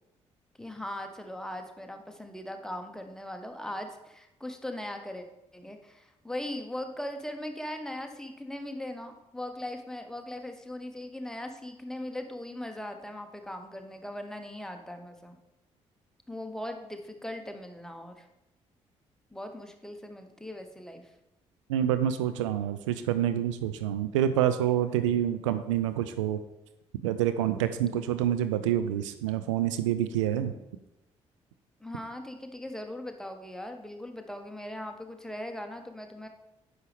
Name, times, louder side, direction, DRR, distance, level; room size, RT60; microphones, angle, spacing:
voice 1, 0.6-5.2 5.5-15.4 16.3-18.2 19.3-21.1 31.8-36.3, left 1 dB, 5° left, 5 dB, 1.2 m, -39 dB
voice 2, 21.7-26.4 27.0-30.5, right 11 dB, 75° right, 11 dB, 0.4 m, -27 dB
9.5 x 6.3 x 3.5 m, 0.93 s
figure-of-eight pair, 40°, 16 cm